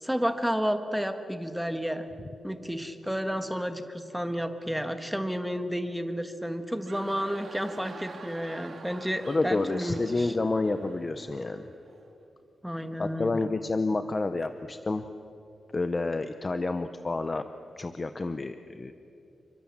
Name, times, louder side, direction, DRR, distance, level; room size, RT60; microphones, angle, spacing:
voice 1, 0.0-2.1 2.4-10.3 12.6-13.4, equal, ahead, 7 dB, 1.4 m, -31 dB
sound 1, 6.6-12.1, right 4 dB, 40° right, 2.6 m, -47 dB
voice 2, 9.2-11.7 13.0-15.0 15.7-17.4 17.8-18.9, left 3 dB, 25° left, 9 dB, 0.8 m, -29 dB
29.5 x 25.0 x 7.4 m, 2.9 s
wide cardioid pair, 175°, 0 cm